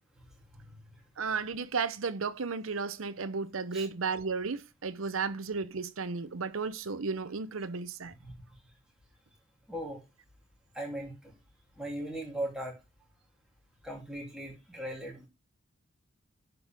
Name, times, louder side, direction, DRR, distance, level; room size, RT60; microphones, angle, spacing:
voice 1, 1.2-8.1, right 4 dB, 75° right, 0.7 m, -34 dB
voice 2, 9.7-10.0 10.7-11.1 11.8-12.7 13.8-15.3, right 1 dB, 5° right, 2.9 m, -38 dB
10.5 x 5.6 x 3.5 m
head